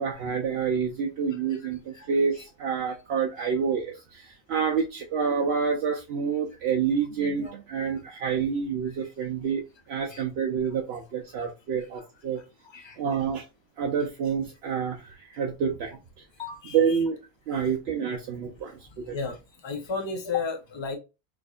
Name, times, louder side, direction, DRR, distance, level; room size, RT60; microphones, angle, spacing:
voice 1, 0.0-3.9 4.5-9.6 9.9-12.4 13.0-13.4 13.8-15.0 15.3-16.0 16.7-17.2 17.5-18.7 19.0-19.1, right 6 dB, 75° right, 0.8 m, -27 dB
voice 2, 16.4-17.0 19.1-19.4 19.6-21.0, left 5 dB, 30° left, 0.6 m, -32 dB
4.7 x 2.6 x 2.3 m
omnidirectional pair, 1.1 m